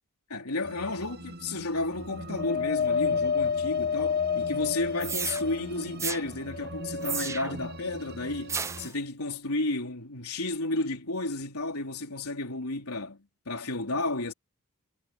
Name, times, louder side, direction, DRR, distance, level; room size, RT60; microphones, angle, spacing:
voice 1, 0.3-14.3, left 2 dB, 90° left, 3.5 m, -32 dB
sound 1, 0.6-8.9, right 1 dB, 45° right, 7.7 m, -43 dB
Wind, 2.4-5.9 6.5-7.5 8.3-8.4, left 6 dB, 30° left, 1.1 m, -29 dB
sound 2, 5.0-5.4 6.0-6.2 7.0-7.7 8.5-8.9, right 5 dB, 15° right, 0.5 m, -32 dB
head